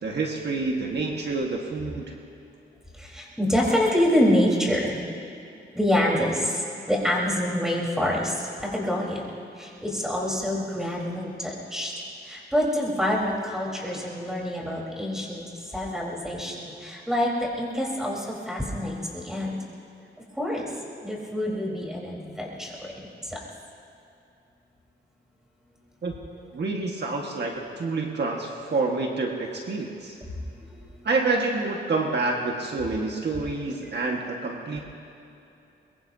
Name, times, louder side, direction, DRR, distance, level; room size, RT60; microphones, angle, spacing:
voice 1, 0.0-2.1 26.0-30.2 31.0-34.8, right 3 dB, 60° right, 0 dB, 1.6 m, -28 dB
voice 2, 3.0-5.0 5.7-9.2 9.6-11.9 12.2-15.4 15.7-19.6 20.4-20.7 21.0-22.7 23.2-23.4 30.7-30.8, left 1 dB, 5° right, -4 dB, 4.1 m, -26 dB
22.5 x 22.5 x 2.8 m, 2.8 s
wide cardioid pair, 115°, 20 cm